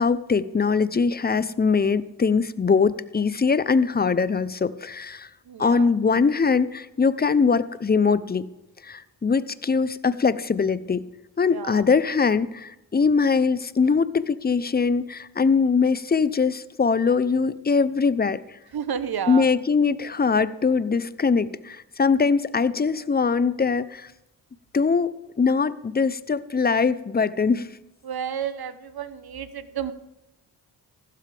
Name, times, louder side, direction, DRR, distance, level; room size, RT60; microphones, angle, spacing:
voice 1, 0.0-5.3 5.6-8.5 8.8-11.1 11.4-18.4 19.3-24.1 24.7-27.7, left 5 dB, 20° left, 16 dB, 0.6 m, -22 dB
voice 2, 5.5-5.9 11.5-11.8 18.7-19.5 28.0-29.9, right 8 dB, 55° right, 13 dB, 1.0 m, -31 dB
15.0 x 12.5 x 3.5 m, 0.94 s
cardioid pair, 60°, 44 cm